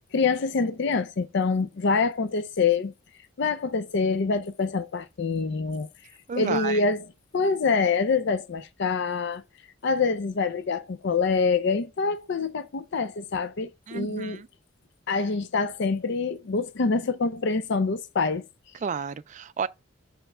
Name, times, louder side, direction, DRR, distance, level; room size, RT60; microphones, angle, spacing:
voice 1, 0.1-2.9 3.4-5.9 6.4-7.0 7.3-9.4 9.8-14.4 15.1-18.5, left 4 dB, 55° left, 0.5 m, -25 dB
voice 2, 6.3-6.8 13.9-14.5 18.8-19.7, right 6 dB, 35° right, 0.3 m, -31 dB
5.6 x 5.6 x 6.0 m
head